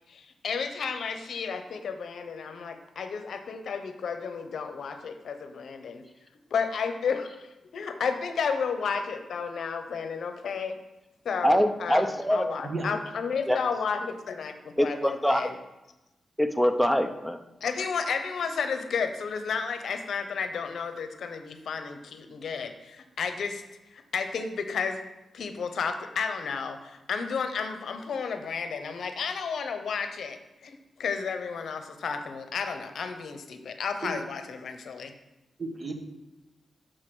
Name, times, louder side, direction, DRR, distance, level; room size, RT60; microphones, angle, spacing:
voice 1, 0.1-6.0 6.5-10.8 11.2-15.5 17.6-23.6 23.9-25.0 25.3-35.1, left 5 dB, 75° left, 7 dB, 0.7 m, -32 dB
voice 2, 11.4-12.5 13.5-13.6 14.8-15.5 16.4-17.4, equal, ahead, 8 dB, 0.6 m, -24 dB
voice 3, 35.6-35.9, right 2 dB, 40° right, 4 dB, 1.1 m, -33 dB
6.3 x 4.7 x 6.1 m, 1.0 s
cardioid pair, 90°, 0 cm